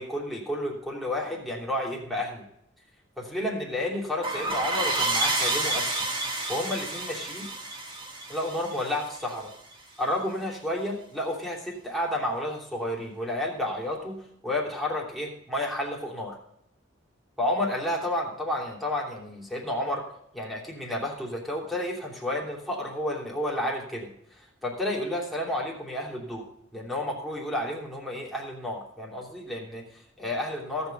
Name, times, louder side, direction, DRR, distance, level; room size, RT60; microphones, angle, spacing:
voice 1, 0.0-2.4 3.2-5.9 6.5-7.5 8.3-9.5 10.0-14.2 14.4-16.3 17.4-20.0 20.3-26.4 26.7-30.9, left 1 dB, ahead, -3 dB, 3.0 m, -31 dB
sound 1, 4.2-9.5, right 2 dB, 25° right, 2.0 m, -29 dB
16.5 x 7.0 x 5.4 m, 0.75 s
head